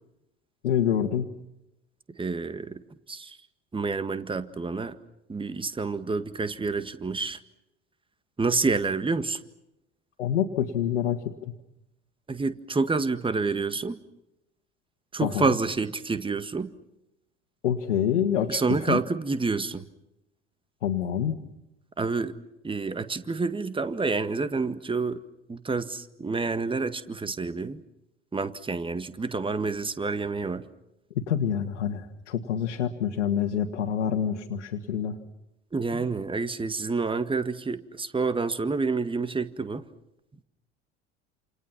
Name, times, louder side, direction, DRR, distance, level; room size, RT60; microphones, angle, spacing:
voice 1, 0.6-1.3 10.2-11.5 15.2-15.6 17.6-19.0 20.8-21.4 31.2-35.2, left 9 dB, 75° left, 3 dB, 2.0 m, -27 dB
voice 2, 2.2-2.8 3.1-3.4 3.7-5.0 5.3-7.4 8.4-9.4 12.3-14.0 15.1-16.7 18.5-19.9 22.0-22.4 22.6-25.2 25.5-27.8 28.3-30.6 35.7-39.8, right 4 dB, 15° right, 12 dB, 1.8 m, -28 dB
29.0 x 28.5 x 6.0 m, 0.89 s
figure-of-eight pair, 70°, 36 cm